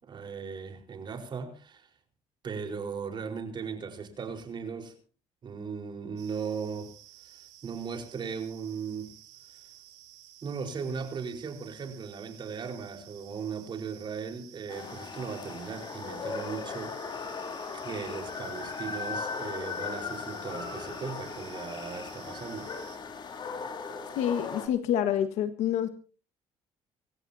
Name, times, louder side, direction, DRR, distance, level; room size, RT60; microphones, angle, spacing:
voice 1, 0.0-1.9 2.4-4.9 5.4-6.9 7.2-9.2 10.4-17.0 17.8-22.7, right 6 dB, 40° right, 4.5 m, -37 dB
sound 1, 6.2-23.0, right 13 dB, 85° right, 7.9 m, -54 dB
sound 2, 14.7-24.7, left 5 dB, 40° left, 3.4 m, -38 dB
voice 2, 24.1-25.9, left 10 dB, 80° left, 1.6 m, -27 dB
25.5 x 14.5 x 2.8 m
cardioid pair, 105°, 11 cm